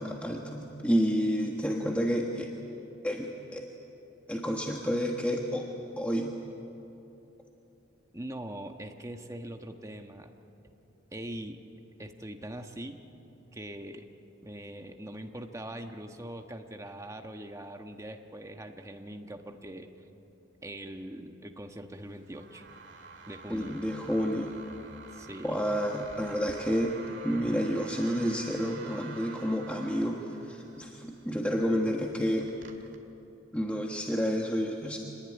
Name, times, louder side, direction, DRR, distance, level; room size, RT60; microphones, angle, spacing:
voice 1, 0.0-2.5 3.0-3.7 4.3-5.7 6.0-6.3 23.5-24.5 25.4-27.0 27.2-32.5 33.5-35.0, equal, 5° left, 0 dB, 1.4 m, -30 dB
voice 2, 8.1-10.3 11.1-11.6 12.0-13.0 13.5-14.1 14.4-19.9 20.6-22.6 23.3-23.8 25.1-25.6, right 1 dB, 15° right, 5 dB, 1.3 m, -42 dB
sound 1, 21.9-33.0, right 4 dB, 60° right, 2.3 m, -49 dB
26.5 x 20.0 x 9.8 m, 3.0 s
head